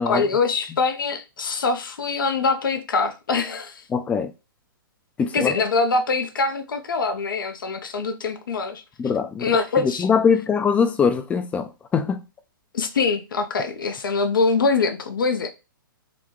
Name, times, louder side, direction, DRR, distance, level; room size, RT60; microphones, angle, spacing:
voice 1, 0.1-3.8 5.3-8.8 9.4-10.1 12.7-15.5, left 4 dB, 70° left, 0.6 m, -23 dB
voice 2, 3.9-4.3 5.2-5.6 9.0-9.5 10.0-12.2, left 6 dB, 10° left, 0.4 m, -22 dB
3.8 x 2.2 x 3.1 m
figure-of-eight pair, 120°, 12 cm